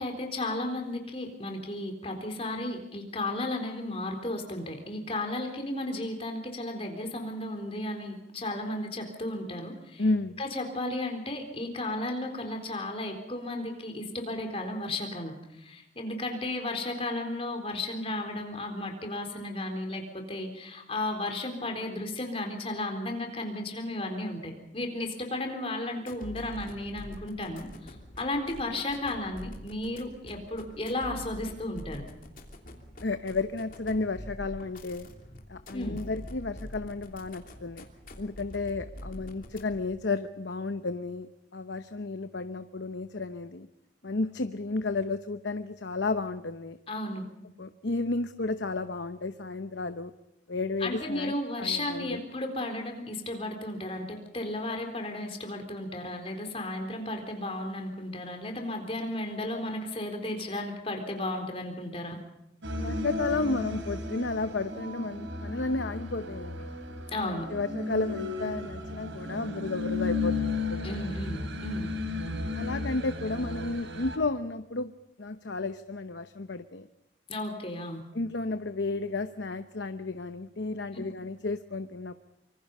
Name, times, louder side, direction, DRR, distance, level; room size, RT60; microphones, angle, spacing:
voice 1, 0.0-10.0 10.4-32.0 35.7-36.0 46.9-47.2 50.8-62.2 67.1-67.5 70.8-71.9 77.3-78.0, left 1 dB, 30° left, 4 dB, 3.9 m, -34 dB
voice 2, 10.0-10.4 33.0-35.1 35.5-37.8 38.2-43.7 44.0-46.8 47.6-50.1 50.5-52.2 62.8-66.7 67.2-71.0 72.5-74.9 75.2-76.9 78.1-82.1, left 3 dB, 70° left, 9 dB, 0.9 m, -32 dB
sound 1, 26.0-40.0, left 1 dB, 45° left, 3.1 m, -45 dB
sound 2, 62.6-74.2, left 2 dB, 80° right, 3.2 m, -34 dB
25.5 x 25.5 x 5.5 m, 0.85 s
head